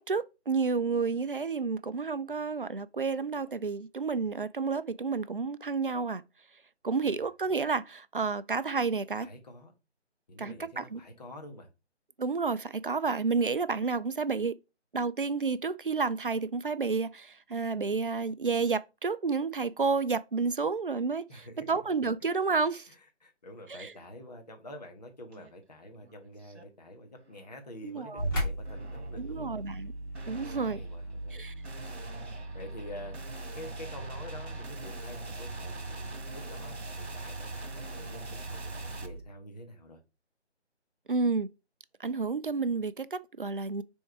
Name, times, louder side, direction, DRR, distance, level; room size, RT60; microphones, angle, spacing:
voice 1, 0.0-6.2 6.8-9.3 10.4-11.0 12.2-14.5 14.9-22.9 23.7-23.9 27.8-28.3 29.2-29.9 30.3-30.8 31.3-31.5 41.1-41.5 42.0-43.8, right 4 dB, 50° right, 0.4 m, -30 dB
voice 2, 9.1-9.7 10.3-11.7 21.3-21.7 22.9-29.6 30.7-31.4 32.5-33.2 33.5-40.0, left 1 dB, 35° left, 1.4 m, -47 dB
sound 1, 25.3-25.5 25.9-26.6 27.1-27.6 28.6-29.3 30.1-39.1, right 3 dB, 65° right, 1.6 m, -45 dB
sound 2, 28.2-39.2, right 1 dB, 20° left, 1.5 m, -39 dB
6.3 x 3.6 x 4.5 m
figure-of-eight pair, 155°, 35 cm